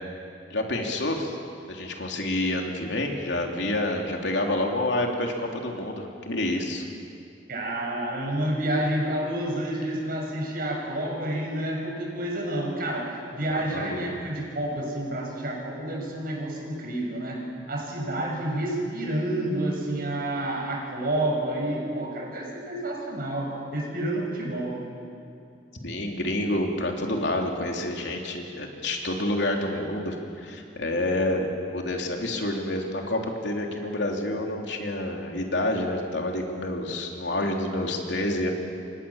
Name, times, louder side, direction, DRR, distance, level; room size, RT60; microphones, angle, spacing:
voice 1, 0.5-1.3 1.7-6.9 13.5-14.2 25.8-31.5 31.7-38.5, left 1 dB, 75° left, 1 dB, 3.5 m, -28 dB
voice 2, 7.5-17.4 17.7-24.8, right 1 dB, 55° right, 0 dB, 6.8 m, -29 dB
28.5 x 25.0 x 7.4 m, 2.6 s
head